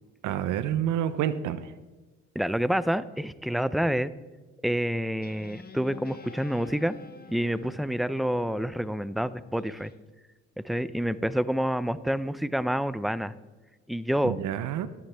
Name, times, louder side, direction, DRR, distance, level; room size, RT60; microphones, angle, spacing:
voice 1, 0.2-1.7 14.2-14.9, right 10 dB, 90° right, 13 dB, 0.6 m, -28 dB
voice 2, 2.4-4.1 4.6-7.0 7.3-9.9 10.6-13.3 13.9-14.4, equal, ahead, 16 dB, 0.4 m, -28 dB
Guitar, 5.2-10.0, left 4 dB, 30° left, 1.2 m, -48 dB
13.0 x 11.0 x 3.3 m, 1.3 s
cardioid pair, 90°, 30 cm